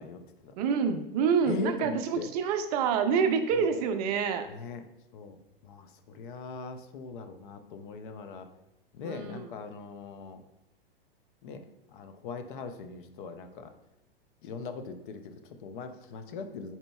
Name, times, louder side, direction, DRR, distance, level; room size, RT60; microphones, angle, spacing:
voice 1, 0.0-0.5 1.4-2.3 3.6-3.8 4.5-4.8 5.1-5.4 5.6-8.5 8.9-10.4 11.4-13.7 14.4-16.8, left 4 dB, 55° left, 8 dB, 0.5 m, -40 dB
voice 2, 0.6-4.5 9.0-9.5, right 6 dB, 45° right, 8 dB, 0.4 m, -27 dB
4.3 x 3.9 x 2.3 m, 0.91 s
hypercardioid pair, 110°, 30 cm